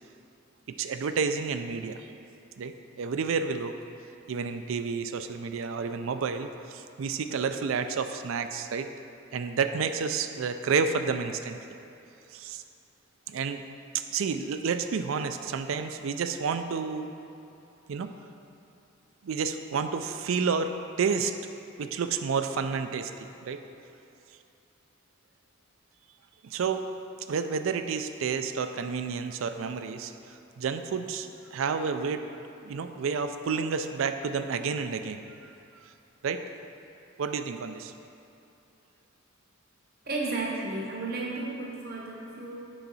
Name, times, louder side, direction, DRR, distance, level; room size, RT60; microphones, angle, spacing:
voice 1, 0.8-2.1 2.6-3.7 4.3-8.9 9.3-11.6 12.3-12.6 13.3-13.6 13.9-17.1 17.9-18.1 19.2-21.3 21.8-23.1 23.4-23.6 26.4-26.8 27.3-30.1 30.6-32.2 32.6-35.6 36.2-36.4 37.2-37.9, right 5 dB, 75° right, 9 dB, 0.4 m, -30 dB
voice 2, 40.0-42.6, right 3 dB, 50° right, -3 dB, 0.9 m, -33 dB
7.0 x 5.5 x 4.0 m, 2.8 s
head